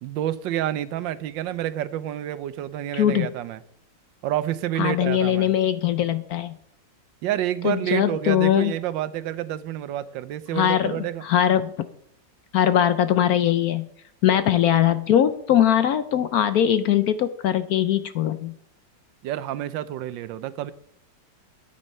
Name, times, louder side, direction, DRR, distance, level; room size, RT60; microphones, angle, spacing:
voice 1, 0.0-3.6 4.2-5.5 7.2-11.2 19.2-20.7, right 12 dB, 85° right, 15 dB, 1.4 m, -29 dB
voice 2, 2.9-3.3 4.8-6.5 7.6-8.7 10.5-11.7 12.5-13.9 14.2-18.6, left 10 dB, 65° left, 12 dB, 1.0 m, -21 dB
12.0 x 8.4 x 5.4 m, 0.73 s
omnidirectional pair, 2.0 m